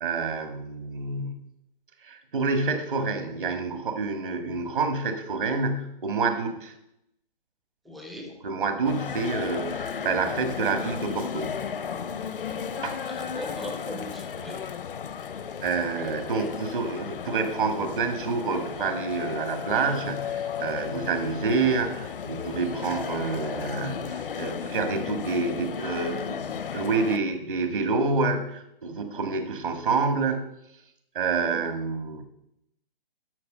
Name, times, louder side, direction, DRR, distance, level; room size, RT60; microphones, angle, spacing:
voice 1, 0.0-1.4 2.0-6.7 8.4-11.7 12.8-13.0 15.6-30.4 31.1-32.2, right 4 dB, 60° right, 7 dB, 1.8 m, -28 dB
voice 2, 7.9-8.3 13.1-14.6 31.4-31.6, left 1 dB, ahead, 1 dB, 0.4 m, -38 dB
sound 1, 8.8-27.2, left 7 dB, 65° left, 0.7 m, -34 dB
12.0 x 6.0 x 5.4 m, 0.81 s
figure-of-eight pair, 135°, 29 cm